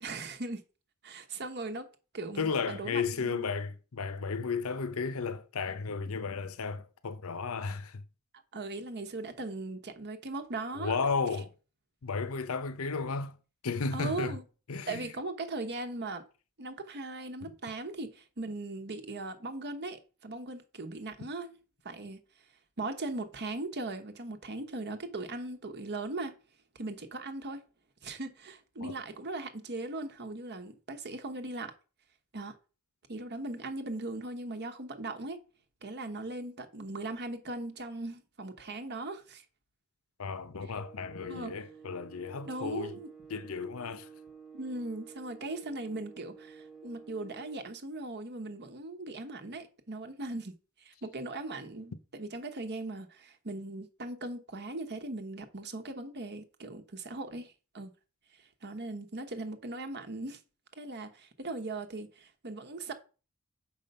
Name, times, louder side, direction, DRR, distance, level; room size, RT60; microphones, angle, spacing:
voice 1, 0.0-0.6 1.0-1.9 2.1-3.4 8.5-11.0 13.9-14.4 14.9-16.2 16.6-21.5 21.8-22.2 22.8-26.3 26.7-27.6 28.0-31.7 32.3-32.6 33.1-35.4 35.8-39.4 41.3-41.5 42.4-43.1 44.5-50.5 50.8-57.9 58.6-60.4 60.8-62.9, right 2 dB, 50° right, 1.1 m, -39 dB
voice 2, 2.4-8.0 10.7-11.5 12.0-13.4 13.6-14.4 14.7-15.1 28.8-28.9 40.2-43.0 43.3-44.1, left 5 dB, 70° left, 0.7 m, -34 dB
sound 1, 40.7-47.8, right 5 dB, ahead, 0.9 m, -52 dB
6.5 x 5.2 x 5.4 m
head